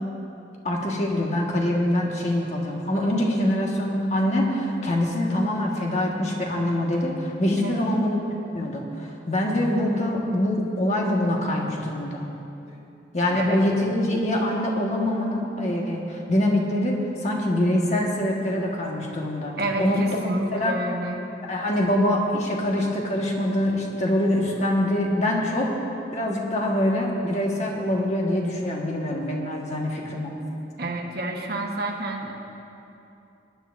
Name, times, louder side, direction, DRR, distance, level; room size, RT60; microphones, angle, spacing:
voice 1, 0.6-8.2 8.5-12.2 13.1-20.0 20.5-20.7 21.5-25.7 26.1-30.3, left 1 dB, 40° left, -1 dB, 1.5 m, -24 dB
voice 2, 19.6-21.2 30.8-32.3, right 1 dB, 60° right, 1 dB, 1.3 m, -29 dB
21.0 x 10.5 x 2.6 m, 2.8 s
head